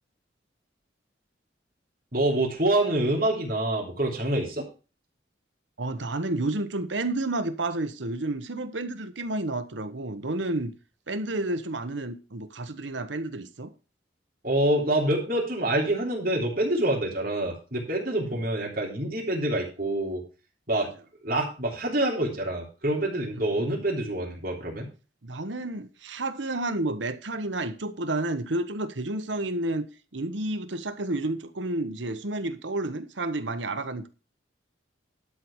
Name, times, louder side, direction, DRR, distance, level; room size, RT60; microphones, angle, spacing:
voice 1, 2.1-4.6 14.4-20.2 20.7-20.9 21.2-24.9, right 1 dB, 50° right, 3.6 m, -26 dB
voice 2, 5.8-10.7 11.1-13.7 18.2-18.4 23.3-23.8 25.2-29.9 30.1-34.1, right 2 dB, 80° right, 1.2 m, -31 dB
12.0 x 4.7 x 7.2 m
head